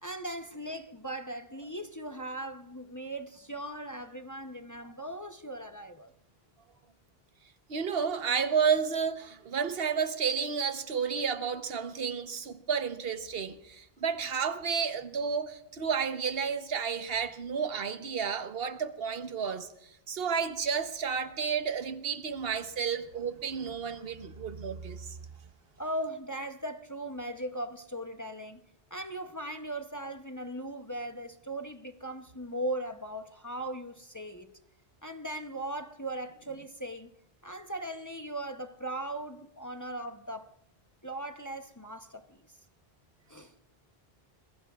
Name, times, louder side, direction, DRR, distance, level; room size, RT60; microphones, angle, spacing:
voice 1, 0.0-6.1 25.8-28.6 28.9-34.5 35.0-37.1 37.4-40.5 41.0-42.4 43.3-43.5, right 1 dB, 20° left, 0.7 m, -38 dB
voice 2, 7.7-19.7 20.1-25.2, right 6 dB, 70° right, 1.2 m, -31 dB
24.5 x 21.5 x 2.4 m
omnidirectional pair, 1.1 m